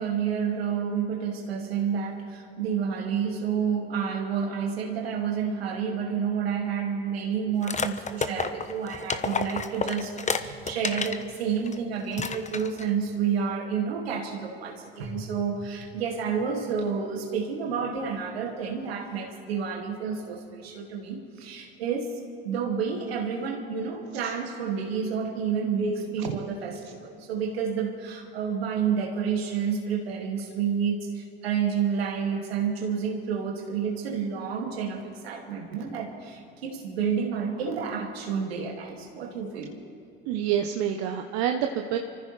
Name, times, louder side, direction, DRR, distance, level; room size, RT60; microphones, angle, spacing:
voice 1, 0.0-22.1 22.4-39.7, right 6 dB, 80° right, 1 dB, 2.4 m, -29 dB
sound 1, 7.6-11.2 11.7-11.8 12.1-12.9, left 4 dB, 25° left, 1.1 m, -30 dB
voice 2, 40.3-42.0, right 9 dB, 65° right, 5 dB, 0.9 m, -27 dB
29.0 x 14.5 x 3.3 m, 2.6 s
hypercardioid pair, 60°, 30 cm